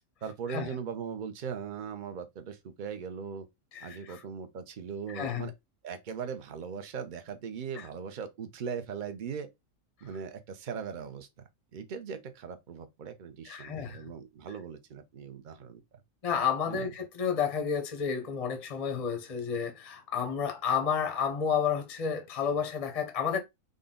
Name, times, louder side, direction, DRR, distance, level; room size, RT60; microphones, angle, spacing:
voice 1, 0.2-3.5 3.8-5.5 5.8-9.5 10.0-11.3 11.7-15.8 16.6-16.9, right 6 dB, 50° right, 0.7 m, -39 dB
voice 2, 3.7-4.2 5.1-5.5 7.8-7.9 13.4-14.1 16.2-23.4, left 7 dB, 40° left, 0.6 m, -31 dB
3.9 x 2.2 x 3.7 m
omnidirectional pair, 1.4 m